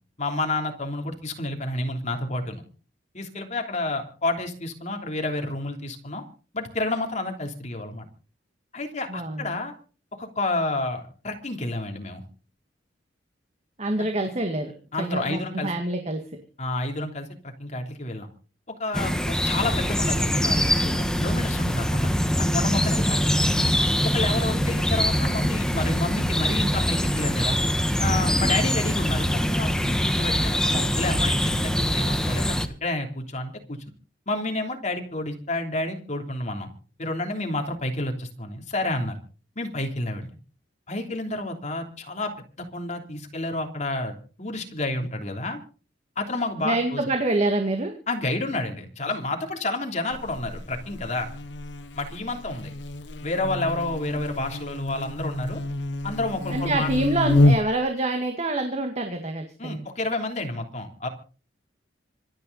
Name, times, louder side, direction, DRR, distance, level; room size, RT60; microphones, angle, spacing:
voice 1, 0.2-2.6 3.1-6.2 6.5-8.1 8.7-9.7 10.2-12.2 14.0-14.1 14.9-15.7 16.6-18.3 18.8-22.1 22.5-23.5 24.1-27.6 28.0-33.8 34.3-36.7 37.0-39.2 39.5-40.3 40.9-42.3 42.7-45.6 46.2-47.1 48.1-51.3 51.9-52.7 53.2-55.6 56.0-56.9 59.6-61.1, left 2 dB, 40° left, 3 dB, 3.2 m, -30 dB
voice 2, 9.1-9.6 13.8-16.2 46.6-47.9 56.5-59.9, right 2 dB, 35° right, 4 dB, 2.1 m, -26 dB
sound 1, 18.9-32.7, equal, 5° left, 1.3 m, -23 dB
Buzz, 50.1-57.9, left 1 dB, 75° left, 1.0 m, -27 dB
26.0 x 9.5 x 4.1 m, 0.38 s
head